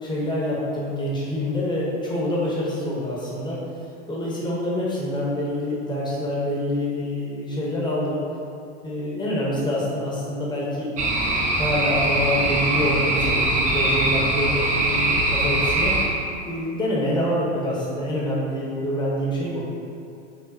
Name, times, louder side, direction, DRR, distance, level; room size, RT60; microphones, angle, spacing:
voice 1, 0.0-3.6 4.1-8.2 8.8-10.9 11.5-16.0 16.4-19.6, left 1 dB, 10° left, -6 dB, 0.9 m, -26 dB
sound 1, 11.0-16.0, right 2 dB, 20° right, 0.5 m, -22 dB
4.8 x 2.6 x 2.7 m, 2.6 s
hypercardioid pair, 100°, 37 cm